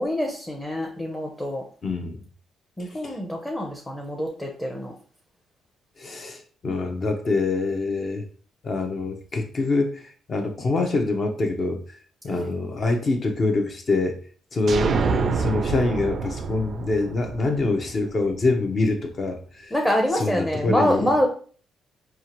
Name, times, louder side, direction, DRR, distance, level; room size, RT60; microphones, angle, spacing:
voice 1, 0.0-1.6 2.8-4.9 12.3-12.5 19.7-21.3, equal, 10° left, 0 dB, 0.8 m, -25 dB
voice 2, 1.8-2.2 2.8-3.1 6.0-8.3 8.6-11.8 12.2-14.2 14.5-19.7 20.2-21.1, left 3 dB, 45° left, 4 dB, 0.8 m, -25 dB
sound 1, 14.7-18.4, right 5 dB, 50° right, 0.3 m, -27 dB
4.5 x 2.5 x 3.0 m, 0.43 s
cardioid pair, 90°, 0 cm